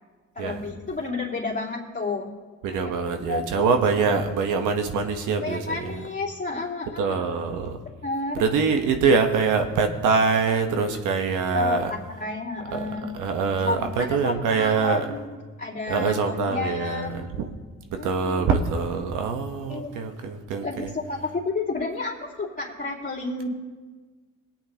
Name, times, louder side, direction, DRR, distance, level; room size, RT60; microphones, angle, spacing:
voice 1, 0.3-2.3 2.7-2.9 3.3-3.4 5.4-7.2 8.0-8.4 11.5-13.1 13.6-15.3 15.6-17.3 18.0-18.5 19.7-20.0 20.6-23.5, left 3 dB, 30° left, -9 dB, 2.8 m, -31 dB
voice 2, 2.6-6.1 7.0-7.8 8.3-11.9 12.7-12.9 13.1-15.0 15.9-17.5 18.0-20.9, right 5 dB, 85° right, 6 dB, 1.2 m, -24 dB
21.0 x 8.8 x 2.9 m, 1.4 s
cardioid pair, 90°, 30 cm